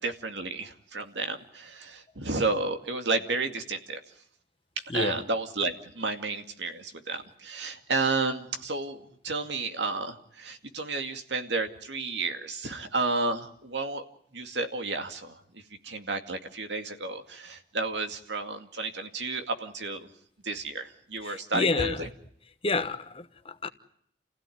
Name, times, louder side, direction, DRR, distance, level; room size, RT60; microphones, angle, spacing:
voice 1, 0.0-4.0 4.9-14.0 14.3-20.1 20.4-22.1, right 3 dB, 80° right, 2.3 m, -32 dB
voice 2, 4.9-5.2 21.2-22.0 22.6-23.7, left 3 dB, 30° left, 1.2 m, -29 dB
29.5 x 16.0 x 9.4 m
head